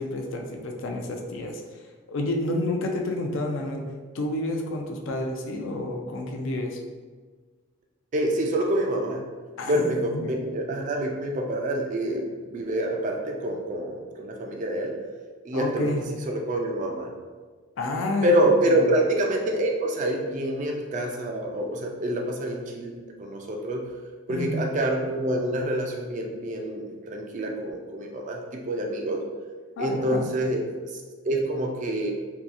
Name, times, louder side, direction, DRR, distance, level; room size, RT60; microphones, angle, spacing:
voice 1, 0.0-1.6 2.1-3.8 4.1-6.8 9.6-9.8 10.1-10.4 15.5-16.0 17.8-18.3 18.7-18.9 24.3-24.7 29.8-30.3, left 2 dB, 75° left, 2 dB, 0.4 m, -29 dB
voice 2, 8.1-9.2 9.7-14.9 15.4-15.9 16.3-17.1 18.2-23.8 24.3-29.2 29.8-30.7 30.9-31.0 31.3-32.1, right 1 dB, 40° right, 2 dB, 0.3 m, -26 dB
2.7 x 2.2 x 2.4 m, 1.4 s
head